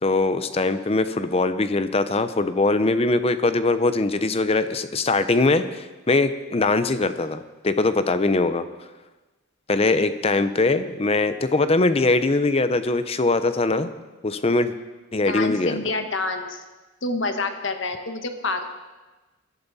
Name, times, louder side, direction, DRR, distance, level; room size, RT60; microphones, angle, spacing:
voice 1, 0.0-8.7 9.7-13.9 14.2-14.7 15.1-15.8, left 2 dB, 30° left, 11 dB, 0.6 m, -22 dB
voice 2, 15.2-16.6 17.0-18.6, left 3 dB, 65° left, 7 dB, 1.3 m, -27 dB
21.0 x 12.0 x 4.1 m, 1.2 s
head